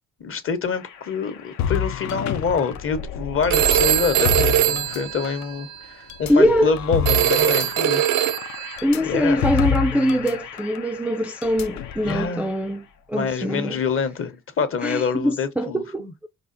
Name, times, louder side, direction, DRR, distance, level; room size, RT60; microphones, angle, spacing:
voice 1, 0.2-8.0 8.5-8.6 9.0-9.4 12.0-12.5 13.1-16.1, left 5 dB, 45° left, 0.8 m, -26 dB
sound 1, 0.7-3.4 4.5-5.5 7.1-13.1, left 8 dB, 85° left, 0.9 m, -42 dB
sound 2, 1.6-5.5 6.1-10.3 10.6-10.8 11.4-12.3, left 8 dB, 70° left, 0.5 m, -28 dB
Telephone, 3.5-5.8 7.0-8.8, right 12 dB, 75° right, 0.5 m, -21 dB
voice 2, 6.3-6.7 8.8-13.8 14.8-16.1, equal, 5° right, 0.3 m, -22 dB
4.8 x 2.4 x 2.5 m
cardioid pair, 90°, 30 cm